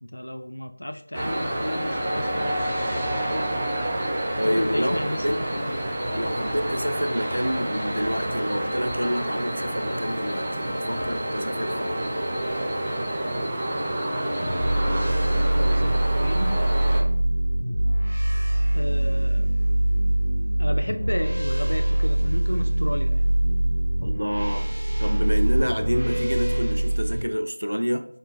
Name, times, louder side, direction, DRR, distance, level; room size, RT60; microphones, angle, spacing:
voice 1, 0.0-3.9 4.4-5.8 6.1-6.3 15.4-16.6 18.7-19.6 20.6-23.3, left 1 dB, 65° left, 0.3 m, -33 dB
sound 1, 1.1-17.0, right 1 dB, 15° right, 0.4 m, -28 dB
voice 2, 4.4-5.4 6.1-12.0 24.0-24.7 25.0-28.1, equal, 85° right, 0.4 m, -28 dB
Trumpet, 7.2-13.2, equal, 35° right, 0.9 m, -40 dB
sound 2, 14.4-27.2, right 1 dB, 65° right, 1.1 m, -23 dB
3.7 x 2.1 x 2.4 m
figure-of-eight pair, 170°, 0 cm